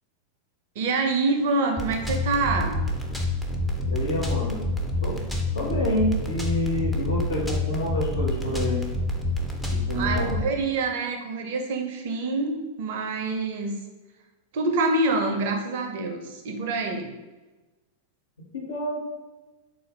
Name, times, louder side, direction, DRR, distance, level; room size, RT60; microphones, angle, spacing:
voice 1, 0.8-2.8 9.9-13.7 14.5-17.1, right 3 dB, 50° right, 4 dB, 0.5 m, -26 dB
sound 1, 1.8-10.4, left 1 dB, ahead, 0.5 m, -28 dB
voice 2, 3.9-4.6 5.0-5.2 5.5-8.8 9.7-10.3 18.5-19.0, left 1 dB, 70° left, -2 dB, 0.9 m, -28 dB
3.6 x 2.5 x 3.4 m, 1.2 s
figure-of-eight pair, 90°, 0 cm